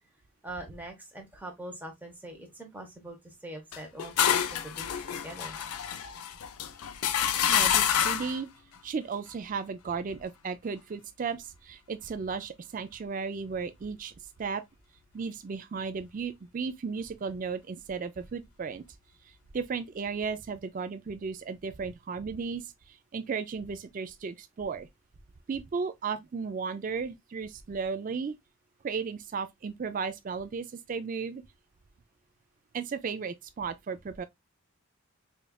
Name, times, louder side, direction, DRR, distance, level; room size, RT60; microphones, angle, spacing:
voice 1, 0.4-5.6, right 1 dB, 10° right, 0.9 m, -43 dB
sound 1, 3.7-8.4, left 9 dB, 85° left, 0.5 m, -28 dB
voice 2, 7.5-8.5 8.8-14.1 14.4-14.6 15.1-18.8 19.5-24.9 25.5-28.4 28.8-31.4 32.7-34.3, right 5 dB, 35° right, 0.3 m, -35 dB
5.2 x 2.4 x 2.2 m
head